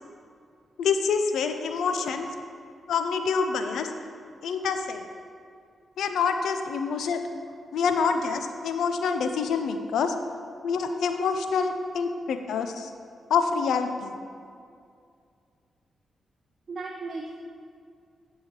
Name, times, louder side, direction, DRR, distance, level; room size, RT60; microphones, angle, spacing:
voice 1, 0.8-2.3 2.9-3.9 4.4-5.0 6.0-7.2 7.7-10.1 10.6-12.9 13.3-14.2, left 5 dB, 80° left, 7 dB, 0.4 m, -26 dB
voice 2, 16.7-17.3, right 3 dB, 55° right, 0 dB, 0.5 m, -37 dB
7.9 x 5.5 x 2.9 m, 2.3 s
supercardioid pair, 45°, 0 cm